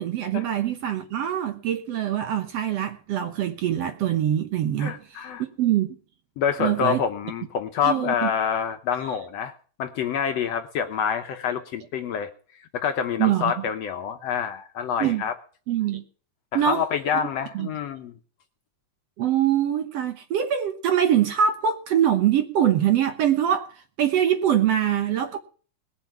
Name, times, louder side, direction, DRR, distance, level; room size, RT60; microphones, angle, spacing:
voice 1, 0.0-4.9 5.4-6.0 6.6-7.0 7.8-8.1 13.2-13.5 15.0-15.2 15.7-16.0 16.5-16.8 17.5-17.7 19.2-23.7 24.0-25.4, right 10 dB, 65° right, 1.8 m, -23 dB
voice 2, 4.8-5.4 6.4-9.5 9.8-12.3 12.6-15.3 16.5-18.1, left 7 dB, 70° left, 1.7 m, -27 dB
20.5 x 7.0 x 5.8 m
omnidirectional pair, 3.6 m